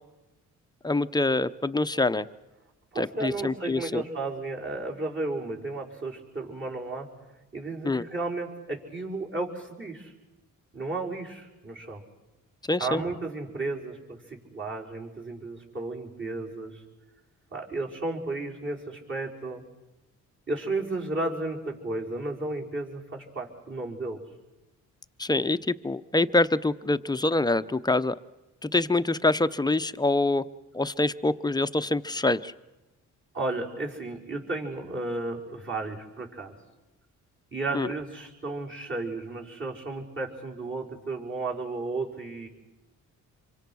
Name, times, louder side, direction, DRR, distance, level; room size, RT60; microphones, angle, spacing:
voice 1, 0.8-2.3 3.0-4.0 7.8-8.0 12.7-13.0 25.2-28.1 28.6-30.4 30.7-32.5 37.7-37.9, left 2 dB, 10° left, 12 dB, 0.7 m, -25 dB
voice 2, 2.9-7.1 7.5-10.1 10.7-12.0 12.8-16.8 17.5-19.6 20.5-24.2 33.3-36.5 37.5-42.5, right 2 dB, 35° right, -2 dB, 5.6 m, -33 dB
26.5 x 24.0 x 6.3 m, 1.0 s
cardioid pair, 75°, 33 cm